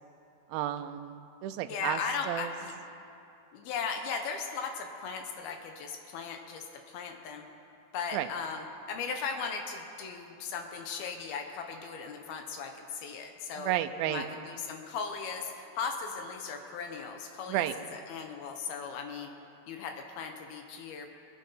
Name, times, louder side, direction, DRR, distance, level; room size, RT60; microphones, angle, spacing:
voice 1, 0.5-2.0 2.3-2.5 8.1-8.3 13.6-14.3 17.5-17.7, right 13 dB, 80° right, 9 dB, 2.2 m, -32 dB
voice 2, 1.7-2.7 3.5-7.4 7.9-13.7 14.0-17.7 17.9-19.3 19.7-21.1, left 5 dB, 75° left, 4 dB, 2.7 m, -37 dB
23.0 x 9.2 x 5.6 m, 2.7 s
omnidirectional pair, 4.7 m